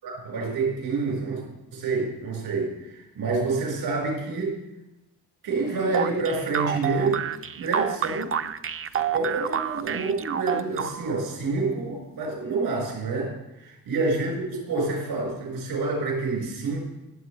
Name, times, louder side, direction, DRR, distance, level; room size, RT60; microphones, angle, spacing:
voice 1, 0.0-1.4 1.7-4.6 5.4-7.2 7.6-8.3 9.1-13.3 13.9-16.8, right 3 dB, 80° right, -2 dB, 4.6 m, -27 dB
sound 1, 5.9-11.3, right 8 dB, 35° right, 0.4 m, -28 dB
18.0 x 7.2 x 3.2 m, 0.95 s
cardioid pair, 75°, 38 cm